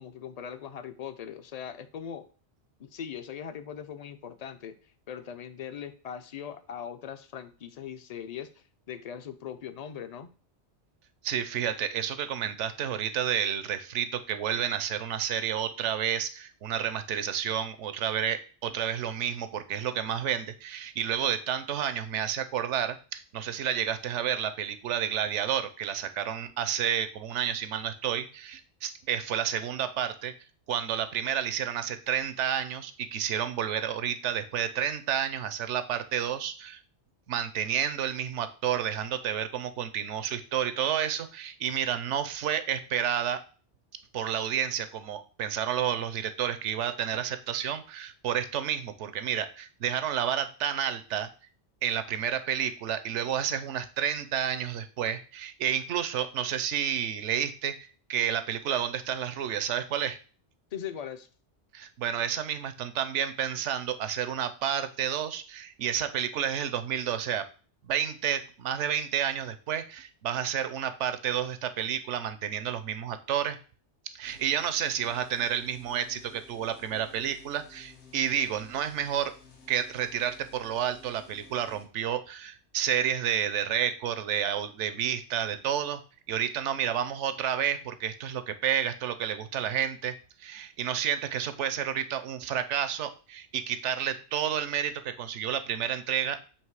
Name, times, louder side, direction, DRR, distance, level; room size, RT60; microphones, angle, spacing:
voice 1, 0.0-2.3 2.8-4.8 5.1-8.5 8.9-10.3 60.7-61.3, left 8 dB, 45° left, 10 dB, 0.5 m, -40 dB
voice 2, 11.2-30.3 30.7-36.8 37.3-43.4 44.1-51.3 51.8-57.7 58.1-60.2 61.7-67.4 67.8-73.6 74.1-79.3 79.7-86.0 86.3-90.1 90.4-96.4, right 9 dB, 85° right, 11 dB, 1.0 m, -30 dB
sound 1, 74.2-81.9, left 3 dB, 75° left, 1.4 m, -54 dB
7.2 x 3.1 x 4.7 m, 0.37 s
omnidirectional pair, 1.2 m